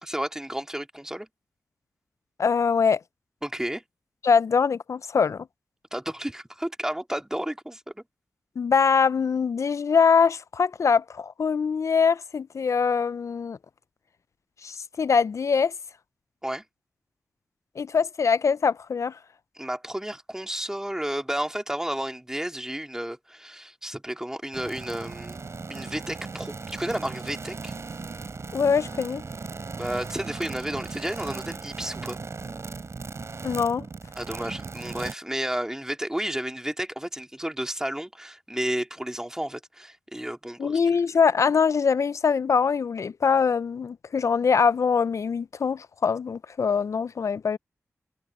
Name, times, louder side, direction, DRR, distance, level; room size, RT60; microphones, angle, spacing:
voice 1, 0.0-1.3 3.4-3.8 5.9-8.0 16.4-16.6 19.5-25.4 25.7-27.7 29.7-32.2 34.1-40.8, right 1 dB, 10° right, 2.7 m, -32 dB
voice 2, 2.4-3.0 4.2-5.4 8.6-13.6 14.6-15.7 17.8-19.1 28.5-29.2 33.4-33.8 40.6-47.6, left 6 dB, 70° left, 0.4 m, -23 dB
sound 1, 24.5-35.1, right 4 dB, 60° right, 3.9 m, -37 dB
cardioid pair, 55°, 5 cm